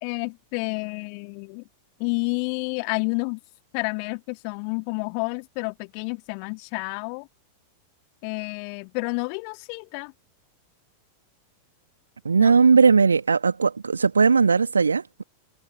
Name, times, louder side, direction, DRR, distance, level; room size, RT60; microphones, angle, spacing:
voice 1, 0.0-1.6 2.0-3.4 3.7-7.3 8.2-10.1 12.4-12.5, left 40 dB or more, 45° left, 2.5 m, -30 dB
voice 2, 12.2-15.2, right 5 dB, 75° right, 2.3 m, -18 dB
figure-of-eight pair, 90°, 0 cm